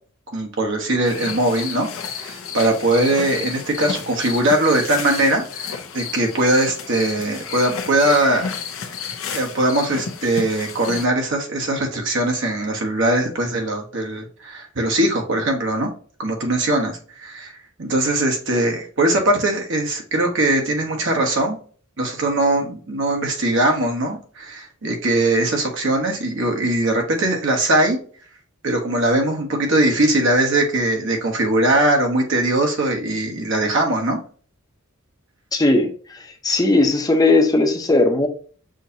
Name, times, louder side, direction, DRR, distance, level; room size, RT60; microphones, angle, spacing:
voice 1, 0.3-1.9 2.1-8.5 9.3-15.9 16.2-17.5 17.8-21.6 22.0-28.0 28.6-34.2, right 1 dB, 65° right, 2 dB, 1.1 m, -20 dB
sound 1, 1.0-11.0, left 6 dB, 75° left, 0.7 m, -32 dB
voice 2, 35.5-38.3, left 2 dB, 20° left, 4 dB, 0.7 m, -18 dB
6.3 x 2.8 x 2.7 m, 0.43 s
head